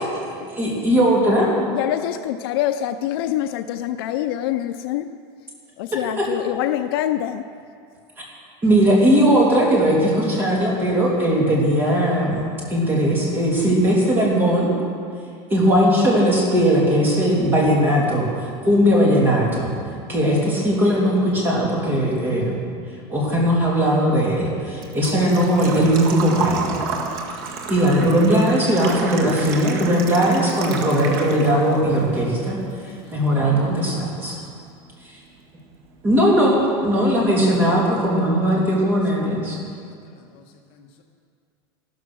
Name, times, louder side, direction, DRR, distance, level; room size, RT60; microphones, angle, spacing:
voice 1, 0.6-1.5 8.6-14.7 15.5-18.3 18.6-19.7 20.1-22.5 23.1-26.8 27.7-32.6 33.1-34.4 36.0-39.6, equal, 15° right, -4 dB, 3.0 m, -18 dB
voice 2, 1.7-5.1 5.8-7.5, left 12 dB, 60° left, 9 dB, 0.5 m, -25 dB
Engine / Trickle dribble / Fill (with liquid), 23.9-31.8 32.1-33.1 33.4-33.5 35.4-35.5 35.7-36.0 36.4-36.5 36.7-36.8, right 5 dB, 55° right, 1.8 m, -31 dB
voice 3, 32.8-33.8 39.6-40.4 40.7-41.0, left 4 dB, 40° left, 2 dB, 1.4 m, -50 dB
14.0 x 13.0 x 6.3 m, 2.3 s
supercardioid pair, 170°, 14 cm